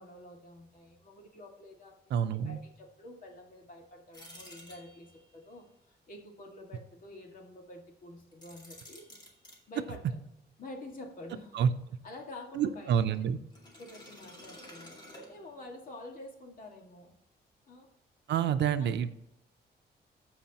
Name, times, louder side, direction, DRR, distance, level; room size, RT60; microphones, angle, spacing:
voice 1, 0.0-2.0 2.3-9.2 9.7-10.2 10.6-11.5 12.0-13.1 13.8-14.9 15.3-17.1 17.7-17.9 18.8-19.1, left 2 dB, 50° left, 1 dB, 2.0 m, -48 dB
voice 2, 2.1-2.6 11.5-11.7 12.5-13.4 18.3-19.1, right 8 dB, 85° right, 10 dB, 0.7 m, -28 dB
sound 1, 4.1-5.3 8.3-9.6 13.5-15.8, equal, 25° left, 2.2 m, -51 dB
14.0 x 5.0 x 2.9 m, 0.83 s
wide cardioid pair, 155°, 18 cm